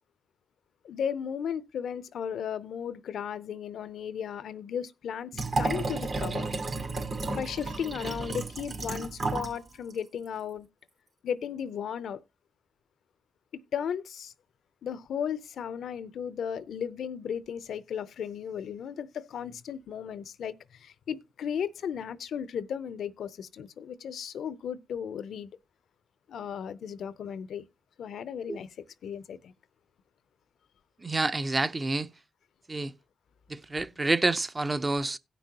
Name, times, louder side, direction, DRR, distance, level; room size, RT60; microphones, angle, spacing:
voice 1, 0.8-6.5 7.3-10.7 11.2-12.2 13.5-14.3 14.8-25.5 26.3-27.6 28.0-29.5, left 8 dB, 75° left, 0.5 m, -35 dB
Liquid, 5.3-9.6 9.9-10.0, right 3 dB, 60° right, 2.5 m, -32 dB
voice 2, 31.0-32.1 32.7-32.9 33.5-35.2, right 2 dB, 30° right, 0.7 m, -28 dB
17.0 x 6.1 x 2.8 m
supercardioid pair, 60°, 0 cm